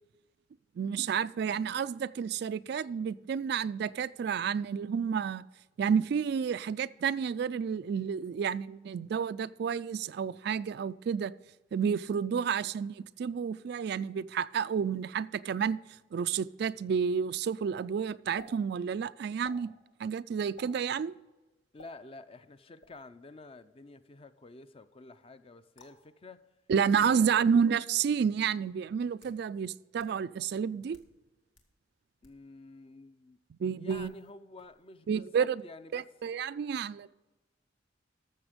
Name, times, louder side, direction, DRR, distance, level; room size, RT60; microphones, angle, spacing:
voice 1, 0.8-5.4 5.8-11.3 11.7-15.8 16.1-19.7 20.0-21.2 26.7-31.0 33.6-34.1 35.1-35.6 35.9-37.1, right 7 dB, 60° right, 0.3 m, -30 dB
sound 1, 18.4-18.5 19.4-19.6 20.6-20.8 21.8-21.9 22.8-23.1 25.8-26.0 26.9-27.0 28.0-28.1 28.9-29.4 30.0-30.1 30.8-31.1 31.5-31.7 32.2-32.4 33.9-34.3 34.6-35.0, left 1 dB, 75° left, 1.9 m, -53 dB
voice 2, 21.7-26.4 26.8-27.6 32.2-33.4 33.7-36.0, left 2 dB, 30° left, 0.5 m, -50 dB
13.0 x 7.0 x 5.1 m
head